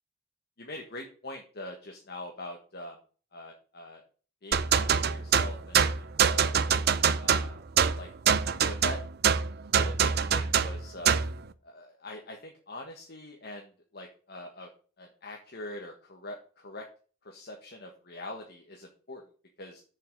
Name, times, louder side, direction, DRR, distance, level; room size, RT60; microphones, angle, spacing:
voice 1, 0.6-3.0 3.3-4.0 4.4-6.5 7.2-7.6 8.0-8.1 8.5-9.0 9.8-11.2 11.6-14.7 15.0-16.8 17.2-19.2 19.6-19.8, left 1 dB, 55° left, 2 dB, 1.5 m, -43 dB
sound 1, 4.5-11.4, right 7 dB, 55° right, 0.6 m, -25 dB
7.1 x 5.8 x 7.4 m, 0.39 s
head